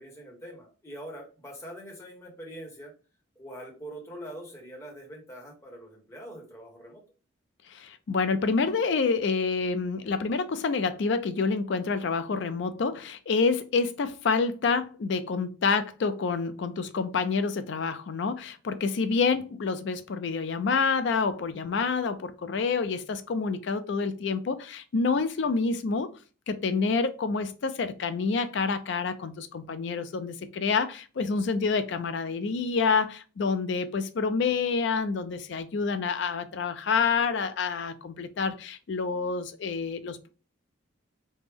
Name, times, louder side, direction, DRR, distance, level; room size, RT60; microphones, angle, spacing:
voice 1, 0.0-2.9 3.4-7.0, equal, 15° left, 0.9 m, -43 dB
voice 2, 7.7-26.1 26.5-40.3, left 4 dB, 55° left, 0.4 m, -28 dB
3.2 x 2.0 x 3.4 m
head